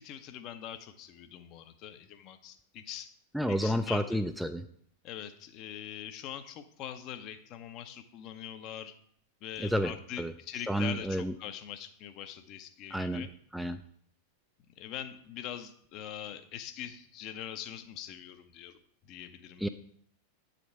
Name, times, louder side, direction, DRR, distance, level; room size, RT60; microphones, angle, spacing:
voice 1, 0.0-3.1 3.5-4.2 5.0-8.9 9.4-13.3 14.8-18.8 19.0-19.7, left 10 dB, 40° left, 10 dB, 0.6 m, -43 dB
voice 2, 3.3-4.7 9.6-9.9 10.2-10.3 10.7-11.3 12.9-13.2 13.5-13.8 19.6-19.7, equal, ahead, 9 dB, 0.3 m, -30 dB
8.5 x 5.1 x 4.6 m, 0.63 s
figure-of-eight pair, 90°, 0 cm